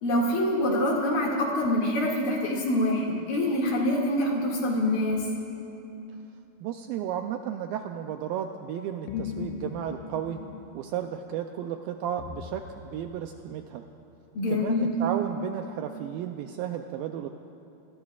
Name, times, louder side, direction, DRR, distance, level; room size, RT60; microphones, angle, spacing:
voice 1, 0.0-5.2 14.4-14.9, left 1 dB, 60° left, -3 dB, 3.8 m, -25 dB
voice 2, 6.6-10.4 10.7-13.8 14.5-17.3, right 9 dB, 80° right, 5 dB, 2.1 m, -33 dB
sound 1, 9.1-10.7 12.2-13.5, left 7 dB, 80° left, 1.8 m, -38 dB
27.5 x 21.0 x 2.4 m, 2.8 s
omnidirectional pair, 4.6 m